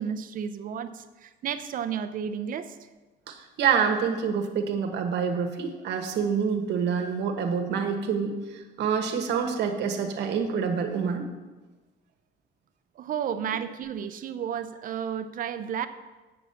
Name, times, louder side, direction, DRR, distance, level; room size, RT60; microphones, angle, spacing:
voice 1, 0.0-2.8 13.0-15.9, right 8 dB, 45° right, 11 dB, 0.5 m, -32 dB
voice 2, 3.3-11.2, right 6 dB, 60° right, 4 dB, 1.2 m, -27 dB
8.5 x 6.1 x 6.8 m, 1.2 s
cardioid pair, 170°, 20 cm